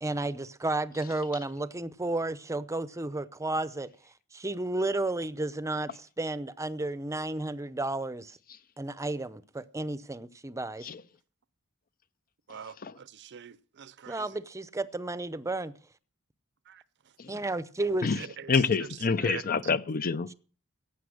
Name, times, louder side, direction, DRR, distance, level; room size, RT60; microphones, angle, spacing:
voice 1, 0.0-3.9 4.3-8.4 8.8-10.9 14.1-15.7 17.3-18.1, right 2 dB, 15° right, 0.7 m, -32 dB
voice 2, 12.5-14.4 16.7-16.8 18.2-18.5 19.2-19.4, right 7 dB, 55° right, 0.7 m, -43 dB
voice 3, 18.5-20.3, left 5 dB, 40° left, 0.6 m, -27 dB
15.5 x 9.3 x 6.4 m
head